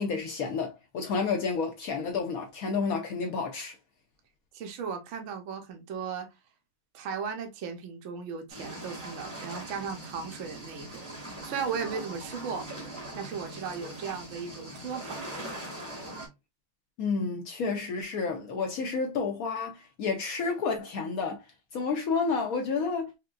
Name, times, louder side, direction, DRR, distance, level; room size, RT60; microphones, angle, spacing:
voice 1, 0.0-3.7 17.0-21.4 21.7-23.1, left 4 dB, 75° left, 0.8 m, -30 dB
voice 2, 4.5-6.3 6.9-12.7 13.1-15.3, right 6 dB, 85° right, 0.6 m, -36 dB
sound 1, 8.5-16.3, right 1 dB, 10° right, 1.1 m, -41 dB
4.6 x 2.2 x 2.3 m
omnidirectional pair, 2.2 m